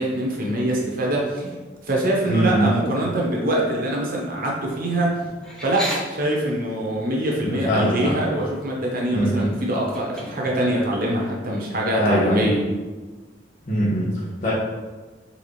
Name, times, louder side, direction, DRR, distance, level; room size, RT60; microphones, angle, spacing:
voice 1, 0.0-1.5 1.8-5.2 5.6-12.6, right 1 dB, 55° right, -2 dB, 1.1 m, -24 dB
voice 2, 2.3-2.7 7.4-8.2 9.1-9.5 12.0-12.5 13.7-14.5, right 1 dB, 50° left, -10 dB, 1.1 m, -22 dB
sound 1, 5.4-6.0 7.7-7.9 8.2-8.7 9.7-10.7, equal, 5° left, 0.9 m, -32 dB
4.2 x 3.8 x 3.3 m, 1.3 s
head